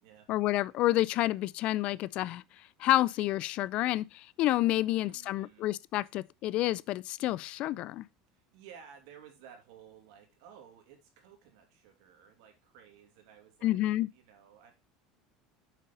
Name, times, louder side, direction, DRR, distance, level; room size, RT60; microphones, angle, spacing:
voice 1, 0.3-2.4 2.8-8.0 13.6-14.1, left 15 dB, 50° left, 0.3 m, -29 dB
voice 2, 4.8-5.7 8.3-13.8 14.1-14.7, right 8 dB, 80° right, 2.6 m, -55 dB
7.4 x 5.4 x 4.0 m
supercardioid pair, 140°, 2 cm